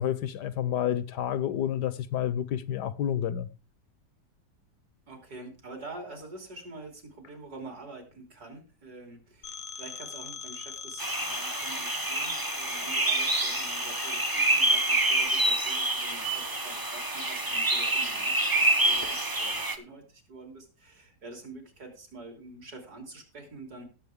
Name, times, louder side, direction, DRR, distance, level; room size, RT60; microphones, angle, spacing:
voice 1, 0.0-3.5, left 10 dB, 70° left, 1.2 m, -29 dB
voice 2, 5.1-23.8, right 2 dB, 55° right, 3.7 m, -46 dB
Telephone, 9.4-15.3, left 6 dB, 90° left, 1.5 m, -40 dB
sound 1, 11.0-19.8, right 2 dB, 15° right, 0.8 m, -27 dB
17.5 x 7.4 x 3.5 m
omnidirectional pair, 1.9 m